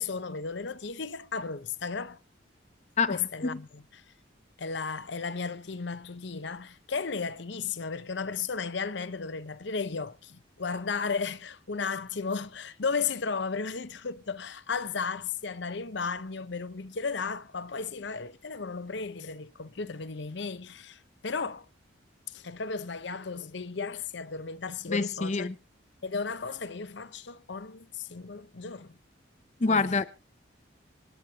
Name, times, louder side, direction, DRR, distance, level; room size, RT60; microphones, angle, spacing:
voice 1, 0.0-2.2 3.1-4.0 4.6-21.7 22.3-25.5 26.0-29.0 29.7-30.0, left 5 dB, 70° left, 0.8 m, -34 dB
voice 2, 3.0-3.6 24.9-25.5 29.6-30.1, left 4 dB, 35° left, 0.6 m, -27 dB
25.5 x 10.0 x 2.9 m
head